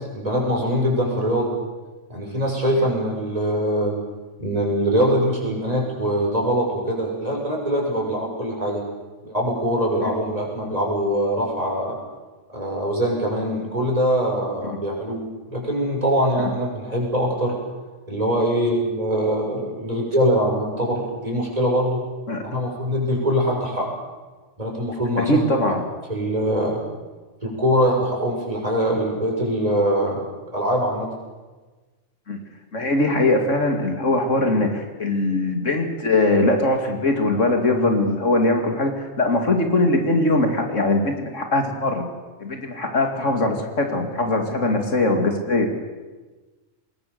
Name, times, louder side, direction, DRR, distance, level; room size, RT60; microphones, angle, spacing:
voice 1, 0.1-1.6 2.1-3.9 4.4-8.8 9.2-12.0 12.5-15.2 15.5-17.6 18.1-22.0 22.4-23.9 24.6-25.4 26.1-26.8 27.4-30.2 30.5-31.1, equal, 30° right, -1 dB, 6.3 m, -23 dB
voice 2, 25.2-25.8 32.3-32.4 32.7-42.1 42.4-45.7, left 2 dB, 70° left, 4 dB, 2.9 m, -21 dB
24.0 x 20.5 x 6.9 m, 1.3 s
omnidirectional pair, 1.3 m